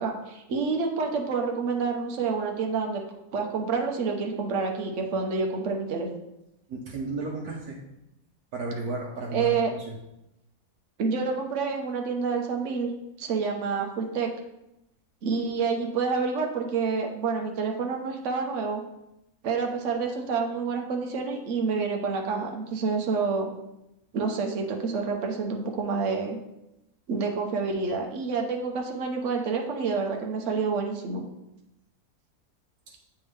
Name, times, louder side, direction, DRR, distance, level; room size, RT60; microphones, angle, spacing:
voice 1, 0.0-3.0 3.3-6.1 9.3-9.7 11.0-12.9 13.2-14.3 15.2-18.8 19.4-23.5 24.1-26.4 27.1-31.2, right 5 dB, 60° right, 2 dB, 1.1 m, -28 dB
voice 2, 6.7-7.8 8.5-10.0 32.9-33.0, right 2 dB, 85° right, -2 dB, 1.2 m, -34 dB
8.3 x 3.5 x 3.2 m, 0.88 s
omnidirectional pair, 1.5 m